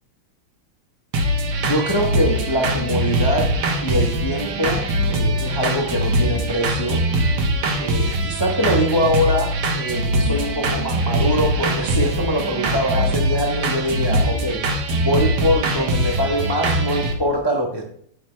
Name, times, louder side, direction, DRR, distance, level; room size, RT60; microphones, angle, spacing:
sound 1, 1.1-17.1, right 1 dB, 75° right, 2.1 m, -22 dB
voice 1, 1.6-3.5 3.8-7.0 7.8-14.6 15.0-17.8, equal, 35° left, 1 dB, 0.4 m, -23 dB
9.1 x 8.4 x 3.2 m, 0.65 s
omnidirectional pair, 2.4 m